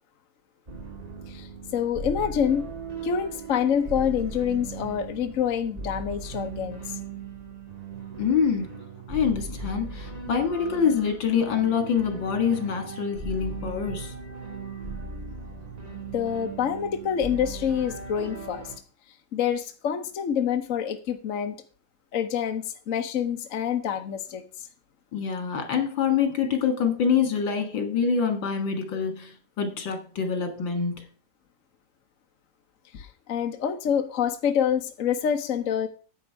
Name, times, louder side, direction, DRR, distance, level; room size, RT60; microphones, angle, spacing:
sound 1, 0.7-18.8, right 4 dB, 20° right, 1.7 m, -38 dB
voice 1, 1.7-2.7 3.0-6.8 16.1-18.7 19.3-21.6 22.1-24.4 32.9-35.9, left 8 dB, 50° left, 6 dB, 1.2 m, -27 dB
voice 2, 8.2-8.8 9.1-14.1 25.1-31.1, left 6 dB, 80° left, 6 dB, 2.6 m, -25 dB
9.8 x 8.4 x 4.6 m, 0.38 s
omnidirectional pair, 2.0 m